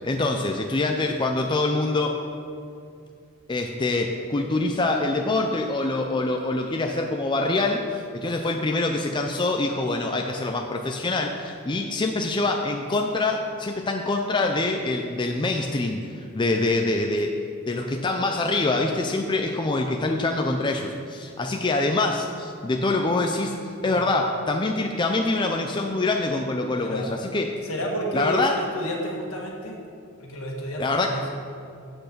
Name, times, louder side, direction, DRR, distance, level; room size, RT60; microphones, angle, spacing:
voice 1, 0.0-2.1 3.5-17.3 17.6-23.6 23.8-27.6 28.1-28.6 30.8-31.3, left 2 dB, 20° left, 3 dB, 0.4 m, -25 dB
voice 2, 26.8-27.1 27.6-29.8 30.2-31.3, equal, 70° left, -1 dB, 1.6 m, -31 dB
7.8 x 6.5 x 6.6 m, 2.4 s
head